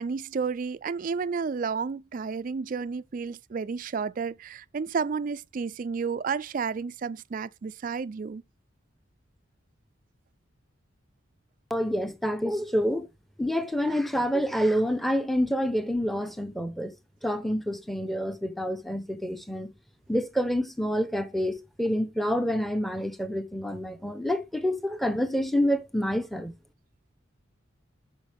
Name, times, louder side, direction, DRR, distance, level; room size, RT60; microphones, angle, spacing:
voice 1, 0.0-8.4, right 5 dB, 40° right, 0.3 m, -31 dB
voice 2, 11.7-13.1 13.4-16.9 17.2-19.7 20.1-26.5, equal, ahead, 0.8 m, -27 dB
7.9 x 6.3 x 3.4 m
head